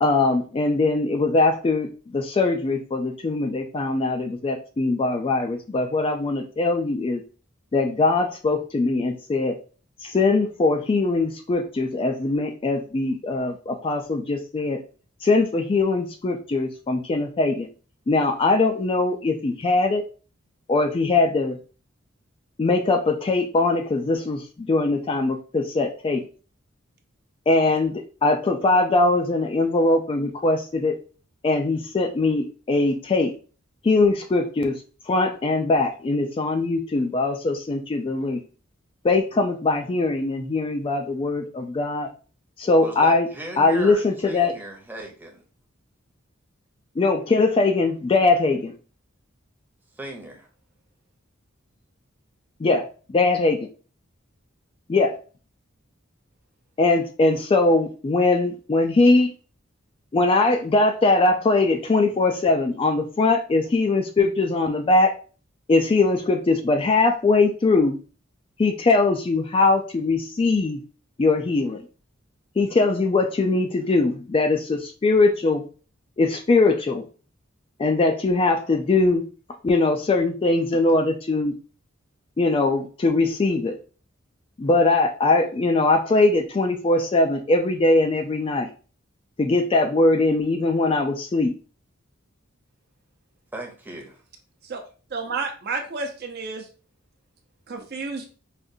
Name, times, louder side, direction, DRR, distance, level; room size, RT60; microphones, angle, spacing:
voice 1, 0.0-7.2 7.7-9.6 10.0-14.8 15.2-17.7 18.1-20.0 20.7-21.6 22.6-26.2 27.5-31.0 31.4-33.3 33.8-34.8 35.1-38.4 39.0-42.1 42.6-43.3 43.6-44.5 47.0-48.7 52.6-52.8 53.1-53.6 54.9-55.1 56.8-59.3 60.1-65.1 65.7-68.0 68.6-70.8 71.2-71.8 72.6-75.6 76.2-77.0 77.8-79.2 79.6-81.5 82.4-83.7 84.6-88.7 89.4-91.5, left 3 dB, 25° left, 5 dB, 0.3 m, -21 dB
voice 2, 42.8-45.4 50.0-50.5 93.5-94.2, right 1 dB, 10° right, 0 dB, 0.8 m, -37 dB
voice 3, 95.1-96.7 97.7-98.3, right 4 dB, 50° right, 4 dB, 0.6 m, -31 dB
4.9 x 2.4 x 2.6 m, 0.37 s
head